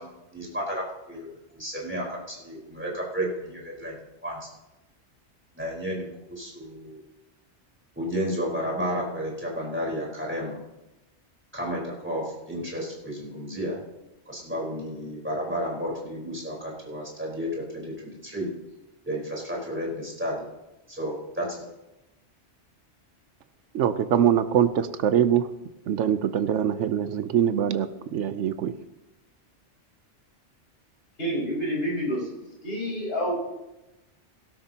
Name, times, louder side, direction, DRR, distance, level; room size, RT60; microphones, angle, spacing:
voice 1, 0.0-4.0 4.2-4.5 5.6-7.0 8.0-10.6 11.5-13.8 14.3-18.5 19.1-20.4 20.9-21.6, equal, 10° right, -4 dB, 4.3 m, -32 dB
voice 2, 23.7-25.4 25.9-28.7, right 9 dB, 85° right, 11 dB, 1.0 m, -23 dB
voice 3, 31.2-32.3 32.6-33.3, equal, 55° left, -5 dB, 5.9 m, -28 dB
17.0 x 12.5 x 2.9 m, 0.98 s
omnidirectional pair, 1.2 m